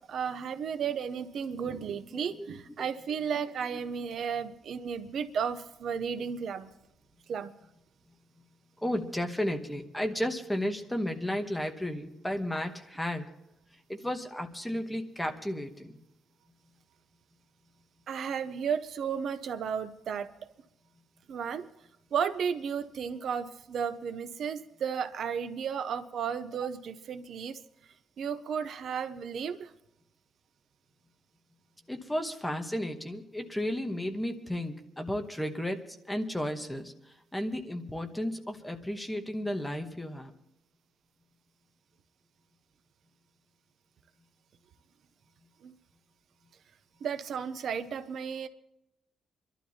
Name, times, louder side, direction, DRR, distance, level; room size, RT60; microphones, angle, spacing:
voice 1, 0.1-6.7 7.3-7.5 18.1-20.3 21.3-21.6 22.1-27.6 28.2-29.7 45.6-45.7 47.0-48.5, right 7 dB, 55° right, 11 dB, 0.6 m, -33 dB
voice 2, 2.1-2.5 2.8-2.9 8.8-13.2 13.9-16.0 31.9-40.3, left 1 dB, 5° left, 4 dB, 1.0 m, -33 dB
27.5 x 12.0 x 2.8 m, 0.84 s
wide cardioid pair, 180°, 0 cm